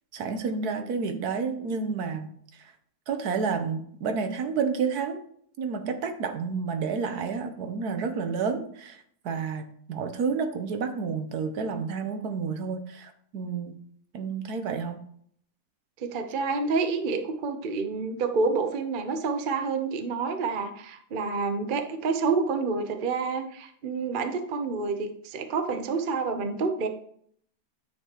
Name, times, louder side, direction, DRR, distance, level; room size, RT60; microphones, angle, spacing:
voice 1, 0.1-2.3 3.1-5.2 5.6-13.8 14.1-15.0, right 5 dB, 70° right, 7 dB, 1.3 m, -30 dB
voice 2, 16.0-26.9, right 4 dB, 45° right, 7 dB, 0.7 m, -28 dB
9.6 x 5.9 x 2.9 m, 0.64 s
omnidirectional pair, 1.7 m